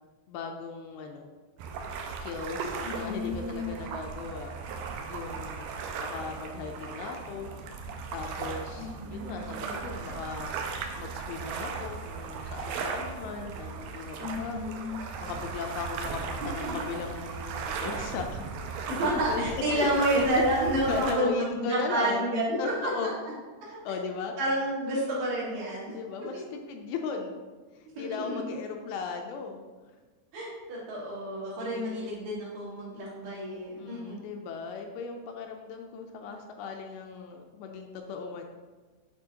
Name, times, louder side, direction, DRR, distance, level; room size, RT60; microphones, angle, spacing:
voice 1, 0.3-1.3 2.2-4.6 5.1-5.7 5.9-7.5 7.8-10.5 10.9-18.4 18.9-19.0 19.3-23.1 23.7-24.3 25.9-27.4 27.7-29.6 31.6-32.1 33.8-38.4, left 5 dB, 80° left, 3 dB, 2.3 m, -37 dB
sound 1, 1.6-21.1, right 5 dB, 85° right, 2.0 m, -37 dB
voice 2, 2.8-3.8 8.8-9.7 14.2-15.0 16.5-16.8 19.0-23.1 24.4-26.3 28.0-28.5 30.3-34.2, right 1 dB, 65° right, -6 dB, 3.2 m, -30 dB
8.7 x 4.5 x 2.8 m, 1.4 s
omnidirectional pair, 4.6 m